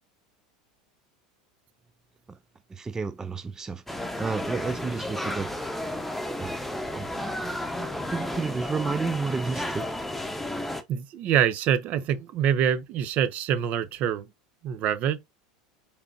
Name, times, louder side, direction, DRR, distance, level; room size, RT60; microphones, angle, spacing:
voice 1, 2.7-5.8 6.4-6.6 6.9-7.4 8.0-9.9, right 4 dB, 15° right, 0.4 m, -32 dB
sound 1, 3.9-10.8, left 1 dB, 5° left, 0.9 m, -32 dB
voice 2, 10.9-14.3 14.6-15.2, right 9 dB, 50° right, 0.7 m, -25 dB
5.0 x 3.4 x 2.6 m
hypercardioid pair, 80°, 3 cm